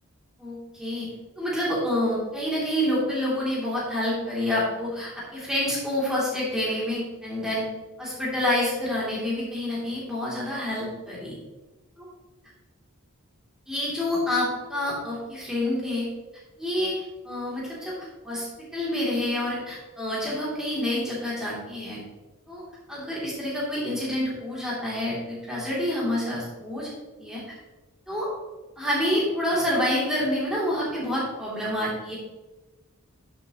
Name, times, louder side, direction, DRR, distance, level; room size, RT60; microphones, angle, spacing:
voice 1, 0.4-1.1 1.4-7.7 8.0-11.3 13.7-16.0 16.6-18.0 18.2-22.0 22.5-22.6 22.9-26.9 27.2-27.6 28.1-28.3 28.8-32.2, left 1 dB, 5° right, -7 dB, 2.8 m, -28 dB
11.0 x 7.5 x 3.0 m, 1.2 s
head